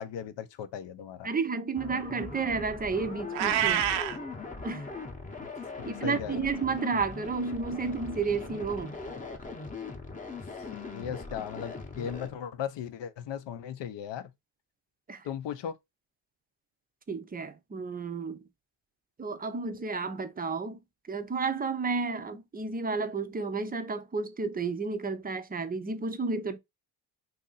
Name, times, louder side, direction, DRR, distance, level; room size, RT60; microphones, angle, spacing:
voice 1, 0.0-1.3 5.4-5.5 5.8-6.5 10.7-14.3 15.2-15.7, left 8 dB, 65° left, 0.6 m, -37 dB
voice 2, 1.2-3.9 4.6-4.8 5.9-8.9 15.1-15.2 17.1-18.4 19.2-20.8 21.1-26.6, right 4 dB, 20° right, 0.5 m, -32 dB
sound 1, 1.8-12.3, left 3 dB, 15° left, 0.8 m, -40 dB
Meow, 3.3-4.2, right 10 dB, 85° right, 0.6 m, -26 dB
2.7 x 2.5 x 3.9 m
cardioid pair, 90°, 46 cm